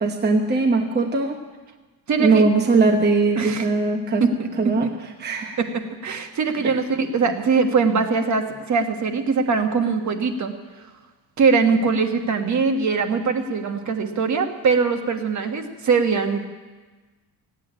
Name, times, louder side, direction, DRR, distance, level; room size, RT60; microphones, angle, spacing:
voice 1, 0.0-1.4 2.2-4.2 4.6-4.9 5.2-5.6, right 3 dB, 25° right, 2 dB, 1.0 m, -20 dB
voice 2, 2.1-2.5 3.4-3.7 4.2-4.9 5.6-10.5 11.4-16.5, right 5 dB, 40° right, 5 dB, 1.4 m, -22 dB
16.5 x 8.3 x 9.9 m, 1.3 s
cardioid pair, 160°, 42 cm